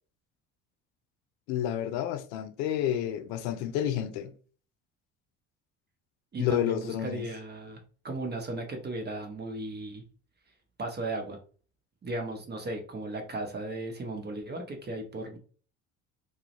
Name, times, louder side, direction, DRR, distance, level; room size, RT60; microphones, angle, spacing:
voice 1, 1.5-4.3 6.4-7.3, left 10 dB, 70° left, 0.5 m, -30 dB
voice 2, 6.3-10.0 10.8-11.4 12.0-15.4, right 2 dB, 25° right, 0.7 m, -36 dB
2.3 x 2.1 x 2.8 m
hypercardioid pair, 60°, 38 cm